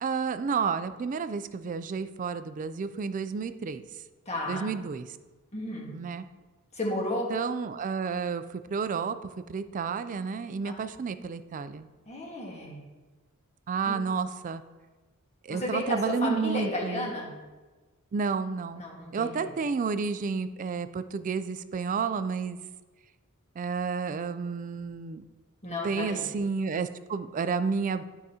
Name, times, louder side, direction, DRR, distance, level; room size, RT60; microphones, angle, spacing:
voice 1, 0.0-3.8 4.5-5.1 5.9-6.2 7.3-9.2 9.5-11.9 13.7-14.6 15.4-17.1 18.1-18.8 19.1-22.6 23.6-25.2 25.8-28.0, right 5 dB, 35° right, 12 dB, 0.3 m, -31 dB
voice 2, 4.2-4.7 5.5-5.9 6.7-7.3 10.6-10.7 12.1-12.8 13.9-14.0 15.5-17.3 18.8-19.4 25.6-26.3, left 1 dB, 30° left, -2 dB, 1.5 m, -33 dB
11.5 x 4.8 x 2.8 m, 1.3 s
head